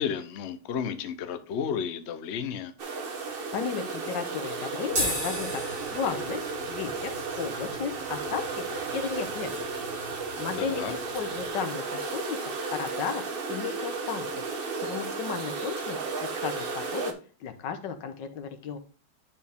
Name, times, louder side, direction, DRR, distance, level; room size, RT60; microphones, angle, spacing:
voice 1, 0.0-2.7 10.6-10.9, left 7 dB, 55° left, 0.8 m, -32 dB
sound 1, 2.8-17.1, right 4 dB, 40° right, 0.9 m, -34 dB
voice 2, 3.5-8.6 8.9-9.7 10.4-13.2 13.5-17.1 17.4-18.8, left 6 dB, 85° left, 1.6 m, -34 dB
sound 2, 4.9-11.5, equal, 80° right, 4.4 m, -37 dB
9.1 x 4.6 x 3.4 m
omnidirectional pair, 1.9 m